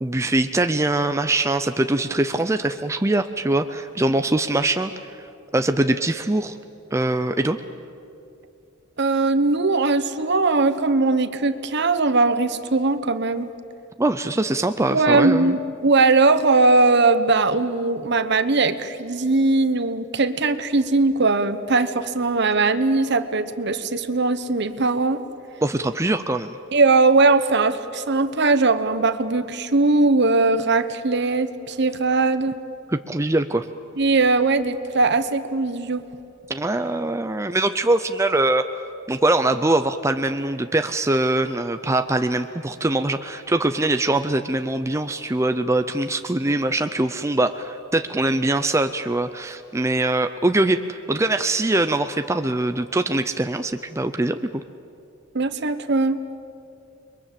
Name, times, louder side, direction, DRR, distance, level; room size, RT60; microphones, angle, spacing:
voice 1, 0.0-4.9 5.2-5.3 5.5-6.6 6.9-7.6 14.0-15.6 25.6-26.6 32.9-33.7 36.5-38.6 39.1-54.6, right 2 dB, 15° right, 8 dB, 0.6 m, -22 dB
voice 2, 9.0-13.5 14.9-25.2 26.7-32.5 34.0-36.0 55.3-56.2, right 3 dB, 55° right, 11 dB, 1.1 m, -20 dB
29.5 x 22.5 x 7.6 m, 2.7 s
head